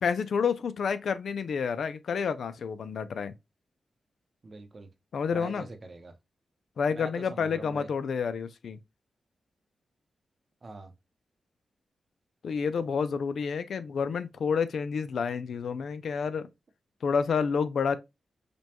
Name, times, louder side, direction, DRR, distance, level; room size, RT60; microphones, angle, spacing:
voice 1, 0.0-3.3 5.1-5.7 6.8-8.8 12.4-16.5 17.0-18.0, left 6 dB, 75° left, 0.4 m, -29 dB
voice 2, 4.4-4.9 5.3-6.1 6.9-7.9 10.6-10.9, right 2 dB, 40° right, 0.8 m, -43 dB
5.1 x 2.3 x 2.8 m
wide cardioid pair, 120°, 0 cm